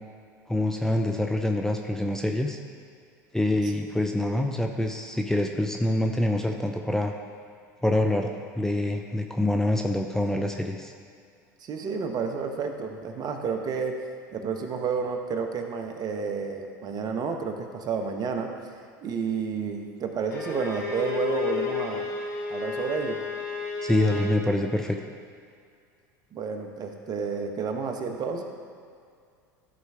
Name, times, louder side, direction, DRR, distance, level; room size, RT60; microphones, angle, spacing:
voice 1, 0.5-2.6 3.3-7.1 7.8-10.9 23.8-25.0, left 1 dB, 5° left, 3 dB, 0.6 m, -26 dB
voice 2, 11.6-14.0 14.3-18.5 19.0-22.0 22.5-23.2 26.3-28.4, right 5 dB, 40° right, 4 dB, 1.0 m, -30 dB
Bowed string instrument, 20.3-24.4, left 5 dB, 80° left, 1.4 m, -32 dB
13.5 x 4.6 x 3.5 m, 2.3 s
hypercardioid pair, 85°, 10 cm